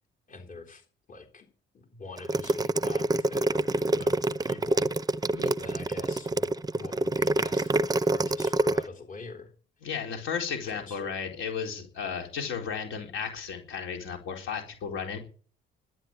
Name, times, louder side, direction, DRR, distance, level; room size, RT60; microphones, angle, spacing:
voice 1, 0.3-1.5 1.7-5.3 5.6-9.5 10.7-11.1, left 3 dB, 40° left, 2 dB, 3.7 m, -45 dB
sound 1, 2.2-8.8, right 2 dB, 20° right, 0.6 m, -26 dB
voice 2, 9.8-15.2, left 6 dB, 80° left, 3 dB, 4.0 m, -34 dB
12.5 x 10.5 x 8.9 m, 0.41 s
cardioid pair, 90°, 20 cm